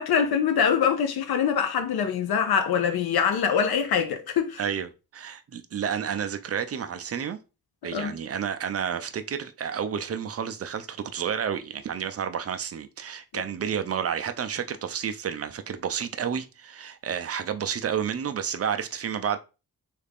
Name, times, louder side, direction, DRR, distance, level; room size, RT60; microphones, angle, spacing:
voice 1, 0.0-4.6 7.9-8.1, left 7 dB, 85° left, 0.6 m, -24 dB
voice 2, 4.6-7.4 7.8-19.4, right 8 dB, 40° right, 0.4 m, -30 dB
3.2 x 2.4 x 3.4 m
wide cardioid pair, 110°, 36 cm